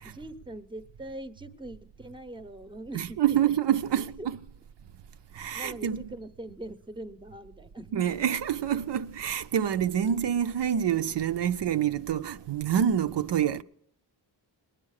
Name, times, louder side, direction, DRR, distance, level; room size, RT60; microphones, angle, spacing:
voice 1, 0.0-3.4 3.9-4.3 5.5-8.0, right 1 dB, 10° right, 0.7 m, -42 dB
voice 2, 2.9-4.4 5.3-6.1 7.9-13.6, right 9 dB, 75° right, 0.6 m, -27 dB
20.0 x 9.9 x 6.4 m
wide cardioid pair, 140°, 43 cm